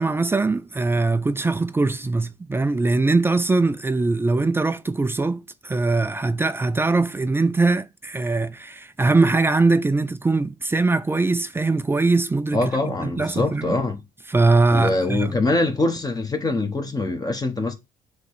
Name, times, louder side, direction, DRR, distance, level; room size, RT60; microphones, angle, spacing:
voice 1, 0.0-13.8 14.3-15.4, right 3 dB, 15° right, 0.4 m, -21 dB
voice 2, 12.5-14.0 14.7-17.7, left 2 dB, 20° left, 1.2 m, -23 dB
7.7 x 3.2 x 4.9 m
cardioid pair, 110°, 17 cm